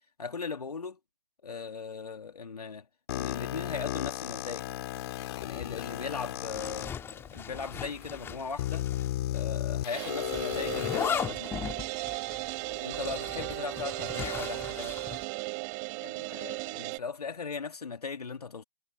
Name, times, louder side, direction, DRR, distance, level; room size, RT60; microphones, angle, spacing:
voice 1, 0.2-1.0 1.4-2.9 3.1-4.7 5.4-8.8 9.3-11.8 12.7-15.0 16.0-18.6, left 5 dB, 70° left, 2.5 m, -38 dB
sound 1, 3.1-6.8 7.6-7.7 8.6-11.1, left 14 dB, 40° left, 2.3 m, -34 dB
Zipper (clothing), 6.5-9.1 9.3-9.4 10.3-15.2, left 8 dB, 10° left, 2.6 m, -38 dB
sound 2, 9.9-17.0, right 40 dB or more, 30° right, 5.8 m, -36 dB
figure-of-eight pair, 130°, 21 cm